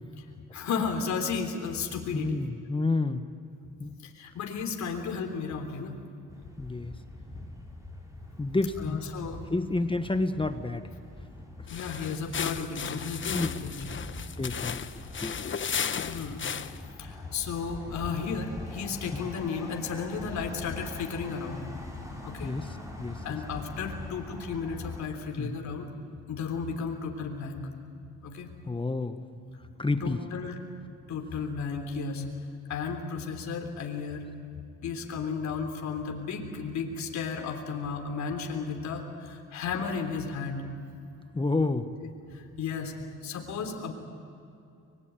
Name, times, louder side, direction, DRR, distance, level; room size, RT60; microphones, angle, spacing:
voice 1, 0.5-2.4 4.2-6.0 8.8-9.4 11.7-13.8 16.0-16.4 17.0-21.7 22.2-22.5 23.2-25.9 26.3-27.6 28.2-28.5 30.0-30.6 31.1-32.2 32.7-34.2 34.8-40.6 42.0-42.1 42.6-42.9 43.2-43.9, left 5 dB, 65° left, 3 dB, 3.5 m, -33 dB
voice 2, 2.1-3.3 3.8-3.9 6.6-6.9 8.4-9.0 9.5-10.9 13.3-13.5 14.4-14.8 15.2-15.4 22.4-22.7 23.0-23.4 25.4-25.6 28.7-29.2 29.8-30.2 41.3-41.9, left 3 dB, 15° left, 9 dB, 1.4 m, -29 dB
sound 1, 6.3-25.0, left 1 dB, 10° right, 6.4 m, -44 dB
sound 2, 11.6-16.9, left 7 dB, 40° left, 1.1 m, -35 dB
24.5 x 21.5 x 9.2 m, 2.6 s
cardioid pair, 90°, 30 cm